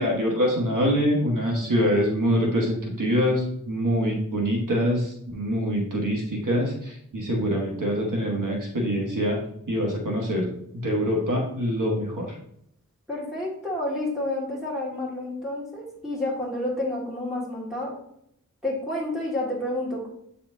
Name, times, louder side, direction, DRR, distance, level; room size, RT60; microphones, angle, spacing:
voice 1, 0.0-9.4 9.7-10.5 10.7-12.3, equal, 85° right, -1 dB, 1.4 m, -24 dB
voice 2, 13.1-18.0 18.6-20.1, left 1 dB, ahead, -6 dB, 1.8 m, -29 dB
8.6 x 4.2 x 2.7 m, 0.73 s
wide cardioid pair, 70°, 31 cm